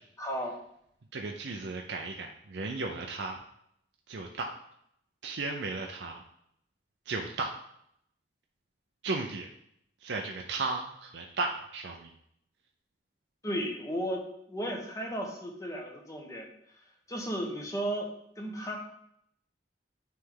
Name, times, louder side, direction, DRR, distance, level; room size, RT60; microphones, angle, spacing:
voice 1, 0.2-0.6 13.4-16.5 17.1-18.1 18.4-18.8, equal, 20° left, 1 dB, 1.1 m, -34 dB
voice 2, 1.1-3.4 4.1-4.5 5.2-6.2 7.1-7.5 9.0-9.5 10.0-12.1, right 3 dB, 75° right, 2 dB, 0.6 m, -35 dB
9.6 x 3.4 x 3.8 m, 0.72 s
head